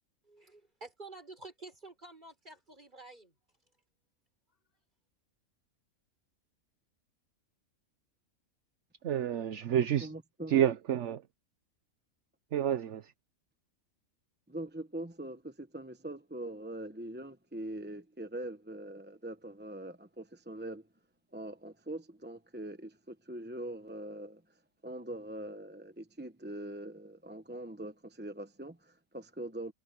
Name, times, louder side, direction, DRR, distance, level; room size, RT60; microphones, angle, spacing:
voice 1, 0.2-3.4, right 2 dB, 35° right, 5.8 m, -50 dB
voice 2, 9.0-10.1 10.5-11.2 12.5-13.1, right 10 dB, 60° right, 1.1 m, -29 dB
voice 3, 9.8-10.6 14.5-20.9 21.3-29.7, right 1 dB, 10° right, 0.8 m, -43 dB
omnidirectional pair, 1.4 m